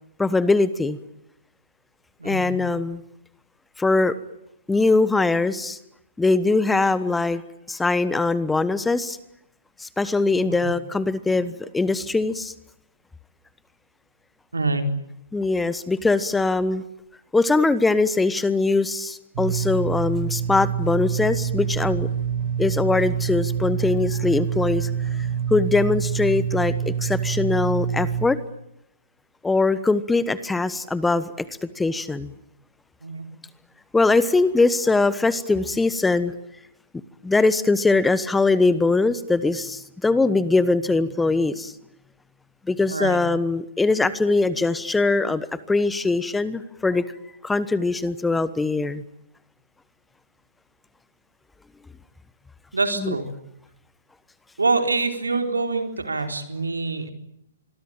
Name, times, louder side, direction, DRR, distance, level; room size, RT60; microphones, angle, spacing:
voice 1, 0.2-1.0 2.2-3.0 3.8-4.1 4.7-5.8 6.2-7.4 7.7-9.2 9.8-12.5 15.3-16.8 17.3-22.1 22.6-24.9 25.5-28.4 29.4-31.5 31.8-32.3 33.9-36.3 37.2-41.7 42.7-47.0 47.4-49.0 53.0-53.1, left 3 dB, 5° left, 15 dB, 1.2 m, -21 dB
voice 2, 2.2-2.6 10.4-10.7 14.5-14.8 33.0-33.3 42.9-43.2 52.7-53.3 54.6-57.1, right 3 dB, 85° right, 5 dB, 4.2 m, -25 dB
sound 1, 19.3-28.3, right 8 dB, 50° right, 2.0 m, -26 dB
25.5 x 22.5 x 8.9 m, 0.79 s
figure-of-eight pair, 125°, 0 cm